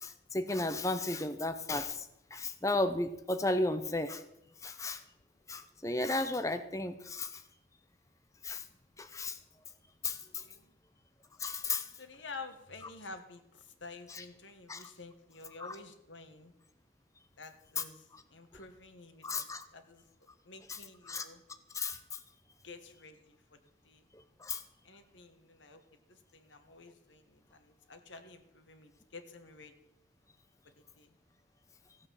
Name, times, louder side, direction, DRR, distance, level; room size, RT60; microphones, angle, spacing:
voice 1, 0.0-2.0 2.3-4.2 4.6-5.0 5.5-7.4 8.4-8.6 9.0-9.4 10.0-10.4 11.4-11.9 14.1-14.2 14.7-14.8 15.6-15.8 17.8-17.9 19.2-19.7 20.7-21.2 21.7-22.0 24.4-24.6, left 2 dB, 15° left, 9 dB, 0.7 m, -34 dB
voice 2, 12.0-13.4 13.8-16.5 17.4-18.0 18.3-19.5 19.7-20.0 20.4-21.4 22.6-23.4 23.9-24.0 24.8-25.8 26.3-29.7 31.0-31.1, left 3 dB, 90° left, 8 dB, 1.6 m, -50 dB
15.5 x 8.1 x 7.3 m, 0.87 s
head